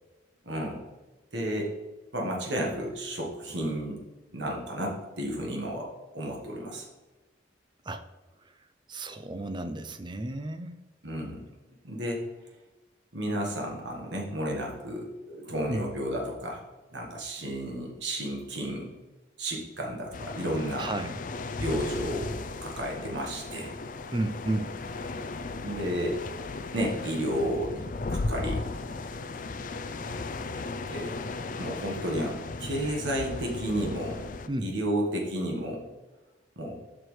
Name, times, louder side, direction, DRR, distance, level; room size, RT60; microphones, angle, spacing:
voice 1, 0.4-0.8 1.3-1.7 2.1-4.0 4.3-5.9 6.1-6.8 11.0-11.4 11.8-12.2 13.1-16.6 16.9-18.9 19.4-20.9 21.6-22.3 22.6-23.7 25.6-26.2 26.7-28.6 30.8-31.2 31.6-34.2 34.6-35.8 36.6-36.8, equal, 70° right, 0 dB, 1.5 m, -32 dB
voice 2, 8.9-10.7 15.7-15.8 20.8-21.2 24.1-24.7 34.5-34.7, right 1 dB, 25° right, 9 dB, 0.5 m, -32 dB
sound 1, 20.1-34.5, left 3 dB, 45° left, 0.4 m, -36 dB
7.6 x 6.1 x 3.2 m, 1.2 s
head